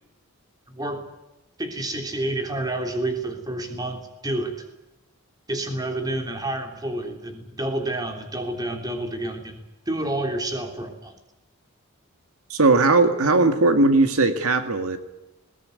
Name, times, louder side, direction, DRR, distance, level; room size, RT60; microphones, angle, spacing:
voice 1, 0.7-1.1 1.6-4.7 5.5-9.6 9.8-11.2, right 1 dB, 15° right, 4 dB, 3.2 m, -29 dB
voice 2, 12.5-15.0, right 3 dB, 80° right, 8 dB, 2.0 m, -18 dB
20.5 x 18.5 x 9.5 m, 0.98 s
head